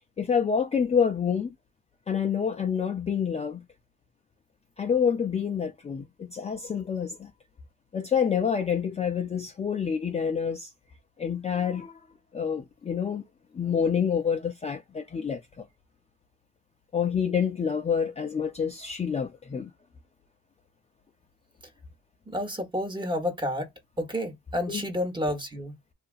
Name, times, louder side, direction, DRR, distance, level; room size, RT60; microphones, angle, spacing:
voice 1, 0.2-1.5 2.1-3.6 4.8-7.3 7.9-10.7 11.2-11.9 12.3-13.2 13.5-15.7 16.9-19.7 24.7-24.8, left 7 dB, 20° left, 0.4 m, -27 dB
voice 2, 22.3-23.7 24.0-25.8, left 1 dB, 15° right, 0.9 m, -30 dB
2.8 x 2.4 x 2.4 m
cardioid pair, 90°, 30 cm